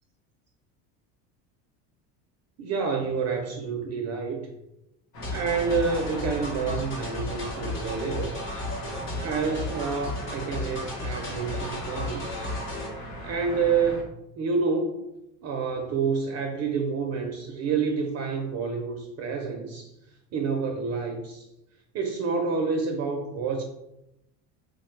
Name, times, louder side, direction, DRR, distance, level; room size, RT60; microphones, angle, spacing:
voice 1, 2.6-4.5 5.3-8.4 9.2-12.4 13.2-14.0 14.4-15.0 15.4-19.9 20.3-21.5 21.9-23.6, right 5 dB, 40° right, 3 dB, 0.4 m, -28 dB
sound 1, 5.1-14.0, right 1 dB, 90° left, 1.0 m, -39 dB
sound 2, 5.2-12.9, left 1 dB, 30° left, 0.7 m, -34 dB
3.2 x 2.1 x 3.1 m, 0.89 s
supercardioid pair, 115°, 40 cm